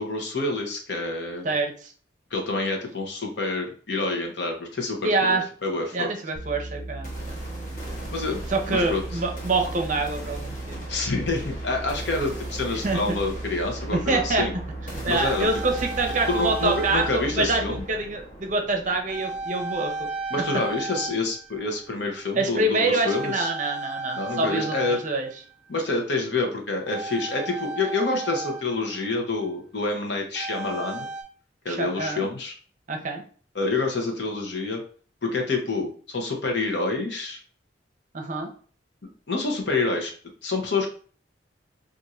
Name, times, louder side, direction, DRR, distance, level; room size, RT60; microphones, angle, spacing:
voice 1, 0.0-1.5 2.3-6.1 8.1-8.4 8.7-9.0 10.9-14.6 15.1-15.5 16.3-17.8 20.3-23.5 24.2-25.0 25.7-31.1 31.6-32.5 33.5-34.8 35.2-37.4 39.3-40.1 40.4-40.9, left 3 dB, 70° left, 2 dB, 0.8 m, -27 dB
voice 2, 1.4-1.9 5.0-5.4 5.9-7.4 8.5-10.9 12.8-13.2 13.9-14.5 15.0-19.9 22.4-25.3 31.7-32.3 32.9-33.2 38.1-38.5, right 2 dB, 40° right, 4 dB, 0.6 m, -26 dB
sound 1, 6.3-17.8, right 2 dB, 25° left, 0.4 m, -36 dB
sound 2, 7.0-21.0, equal, 45° left, 1.0 m, -40 dB
sound 3, 15.2-17.4 17.6-17.9 19.1-21.8 22.1-22.5 23.0-25.7 26.9-29.2 30.3-31.2, right 3 dB, 5° right, 0.8 m, -35 dB
2.5 x 2.5 x 4.1 m, 0.43 s
head